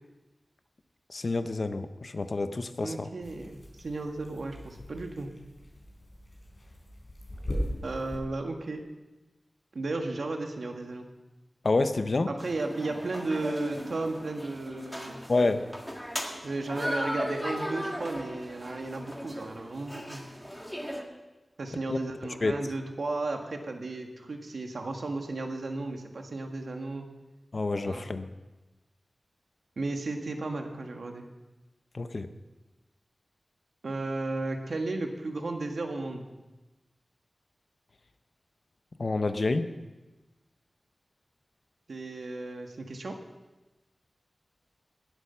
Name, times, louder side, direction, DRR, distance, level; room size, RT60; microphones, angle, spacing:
voice 1, 1.1-3.1 11.6-12.3 15.3-15.7 21.9-22.0 22.4-22.5 27.5-28.2 31.9-32.3 39.0-39.7, left 3 dB, 55° left, 9 dB, 0.8 m, -28 dB
voice 2, 2.8-5.3 7.8-8.8 9.7-11.1 12.3-15.2 16.4-20.2 21.6-27.1 27.9-28.1 29.8-31.3 33.8-36.3 41.9-43.1, right 2 dB, 80° right, 4 dB, 1.6 m, -34 dB
sound 1, 3.2-8.2, equal, 40° left, 3.8 m, -39 dB
sound 2, 12.4-21.0, equal, ahead, 1.8 m, -37 dB
19.5 x 8.3 x 5.7 m, 1.1 s
wide cardioid pair, 90°, 0 cm